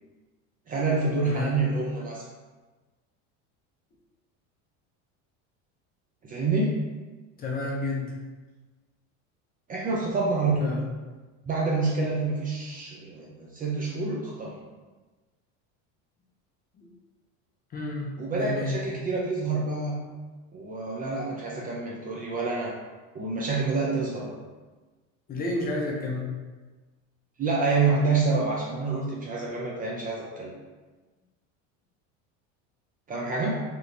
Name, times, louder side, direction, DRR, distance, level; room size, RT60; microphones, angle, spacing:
voice 1, 0.7-2.2 6.2-6.8 9.7-10.7 11.4-14.6 18.2-20.0 20.5-22.7 23.1-24.3 27.4-30.5 33.1-33.6, right 3 dB, 25° right, -3 dB, 0.4 m, -27 dB
voice 2, 1.2-1.6 7.4-8.2 10.6-10.8 16.8-16.9 17.7-18.1 18.4-18.8 25.3-26.4, left 2 dB, 25° left, -1 dB, 0.5 m, -31 dB
3.1 x 2.9 x 2.6 m, 1.3 s
supercardioid pair, 125°, 35 cm